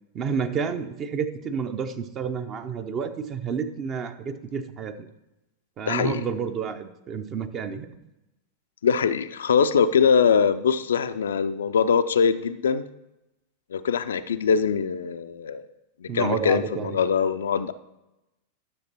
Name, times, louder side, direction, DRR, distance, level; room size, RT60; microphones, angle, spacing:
voice 1, 0.1-5.1 5.8-7.9 16.1-17.0, right 6 dB, 30° right, 9 dB, 0.7 m, -30 dB
voice 2, 5.9-6.2 8.8-12.8 13.7-15.7 16.0-17.7, left 6 dB, 65° left, 11 dB, 0.4 m, -22 dB
9.9 x 6.6 x 4.2 m, 0.94 s
figure-of-eight pair, 90°, 0 cm